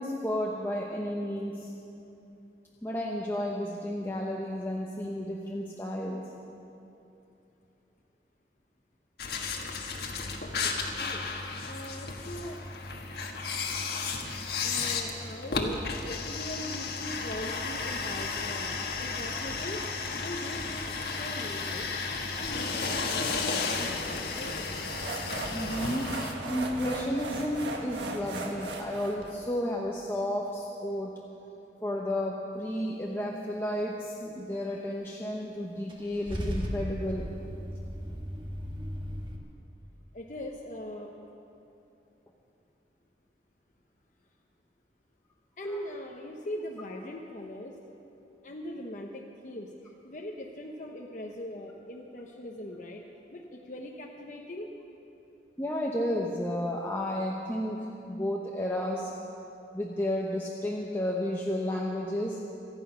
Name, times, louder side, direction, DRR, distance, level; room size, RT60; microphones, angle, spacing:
voice 1, 0.0-1.7 2.8-6.2 25.5-26.1 26.4-31.1 31.8-37.3 45.7-45.8 55.6-57.8 58.1-59.1 59.7-62.4, left 1 dB, 15° left, -3 dB, 1.0 m, -32 dB
sound 1, 9.2-26.3, left 4 dB, 65° left, 1.5 m, -33 dB
voice 2, 10.6-11.3 11.6-12.6 14.6-18.7 19.0-19.8 20.1-21.9 22.3-24.7 40.1-41.1 45.6-47.7 48.4-53.0 53.3-54.7, left 1 dB, 45° left, -1 dB, 1.0 m, -41 dB
sound 2, 22.3-29.3, right 2 dB, 90° right, 1.7 m, -39 dB
Car / Engine starting / Idling, 35.9-39.4, equal, 30° right, 1.4 m, -36 dB
26.0 x 8.9 x 5.7 m, 2.9 s
head